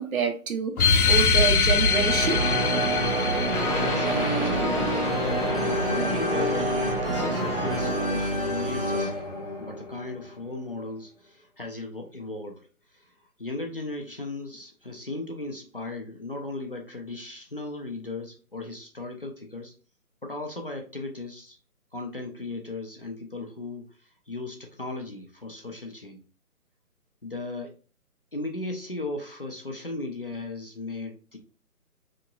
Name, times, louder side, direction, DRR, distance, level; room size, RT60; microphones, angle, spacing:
voice 1, 0.0-2.4, right 5 dB, 65° right, 5 dB, 0.9 m, -27 dB
sound 1, 0.8-5.8, left 4 dB, 75° left, 0.7 m, -24 dB
sound 2, 1.8-8.6, right 3 dB, 45° right, 0.5 m, -28 dB
voice 2, 3.0-19.7 20.2-21.6 21.9-26.2 27.2-27.7 28.3-31.4, left 2 dB, 40° left, 1 dB, 0.4 m, -37 dB
sound 3, 3.5-10.5, left 2 dB, 20° left, 0.8 m, -29 dB
3.9 x 2.9 x 2.2 m, 0.37 s
hypercardioid pair, 160°, 45 cm